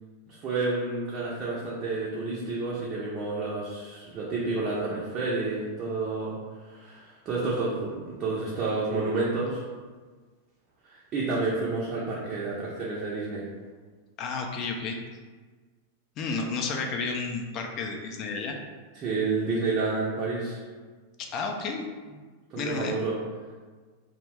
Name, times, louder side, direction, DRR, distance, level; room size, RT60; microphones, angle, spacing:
voice 1, 0.3-6.4 6.6-9.6 10.8-13.4 18.9-20.6 22.5-23.2, right 3 dB, 35° right, -6 dB, 0.5 m, -30 dB
voice 2, 14.2-15.0 16.2-18.6 21.3-21.9 22.6-22.9, left 4 dB, 35° left, 2 dB, 0.3 m, -31 dB
2.3 x 2.1 x 3.3 m, 1.4 s
figure-of-eight pair, 90°, 0 cm